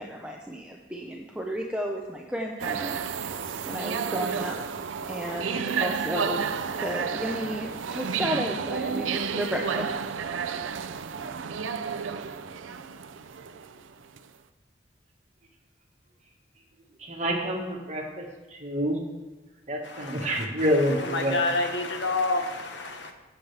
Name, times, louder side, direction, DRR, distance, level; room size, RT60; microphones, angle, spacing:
voice 1, 0.0-3.1 3.7-4.8 5.1-9.9, equal, 5° right, 0 dB, 0.6 m, -33 dB
sound 1, 2.6-14.2, right 6 dB, 85° right, 0.5 m, -31 dB
voice 2, 17.0-18.2 18.5-19.0 19.7-21.4, equal, 35° right, 1 dB, 1.5 m, -27 dB
voice 3, 19.8-23.1, left 2 dB, 65° left, 4 dB, 1.2 m, -29 dB
15.0 x 7.2 x 3.4 m, 1.2 s
head